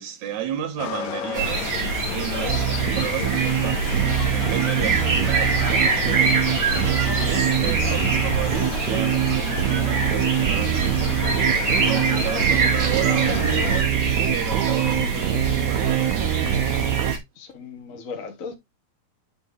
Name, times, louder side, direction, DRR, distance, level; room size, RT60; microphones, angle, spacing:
voice 1, 0.0-4.0 4.3-14.0 14.3-16.3, right 10 dB, 60° right, 2.8 m, -33 dB
sound 1, 0.8-13.8, left 9 dB, 80° left, 2.5 m, -33 dB
sound 2, 1.3-17.2, right 3 dB, 40° right, 1.7 m, -25 dB
sound 3, 2.5-17.1, right 14 dB, 80° right, 1.8 m, -25 dB
voice 2, 17.3-18.5, left 5 dB, 60° left, 0.8 m, -36 dB
10.5 x 3.8 x 3.5 m
omnidirectional pair, 3.9 m